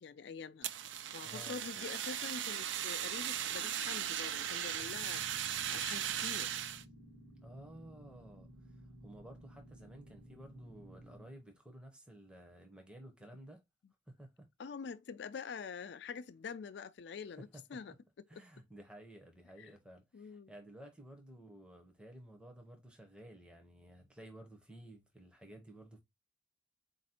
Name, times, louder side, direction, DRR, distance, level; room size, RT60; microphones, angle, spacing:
voice 1, 0.0-0.7 1.1-5.2 5.7-6.6 14.6-18.4 19.6-19.8 20.1-20.5, left 5 dB, 60° left, 0.4 m, -46 dB
Fire, 0.6-6.8, right 10 dB, 75° right, 0.4 m, -38 dB
voice 2, 1.2-1.6 7.4-13.6 14.1-14.5 18.3-26.0, right 1 dB, 5° right, 0.7 m, -54 dB
sound 1, 4.8-11.3, equal, 50° right, 1.0 m, -55 dB
4.1 x 2.6 x 4.2 m
head